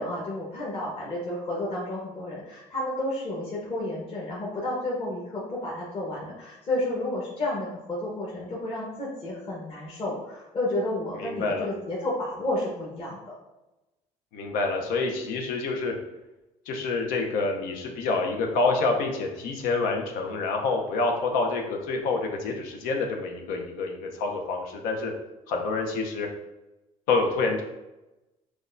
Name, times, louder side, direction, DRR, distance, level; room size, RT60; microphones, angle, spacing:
voice 1, 0.0-13.3, left 1 dB, 40° left, -5 dB, 1.0 m, -31 dB
voice 2, 11.2-11.7 14.3-15.9 16.7-25.1 25.5-26.3 27.1-27.6, left 3 dB, 85° left, 2 dB, 0.7 m, -27 dB
6.2 x 2.3 x 2.6 m, 0.99 s
cardioid pair, 115°, 14 cm